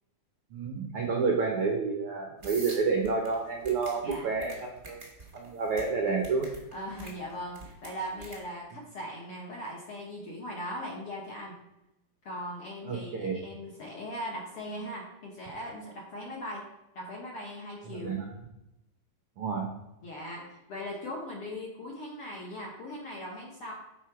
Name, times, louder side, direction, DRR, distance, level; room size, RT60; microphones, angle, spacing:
voice 1, 0.5-5.0 5.3-6.5 12.8-13.4 17.9-18.3 19.4-19.7, right 4 dB, 90° right, 1 dB, 1.2 m, -29 dB
sound 1, 2.4-8.4, right 2 dB, 50° right, 0.6 m, -46 dB
voice 2, 6.7-11.6 12.2-16.6 16.9-18.1 20.0-23.7, equal, 65° left, -3 dB, 1.4 m, -39 dB
11.0 x 4.2 x 4.8 m, 0.91 s
omnidirectional pair, 4.0 m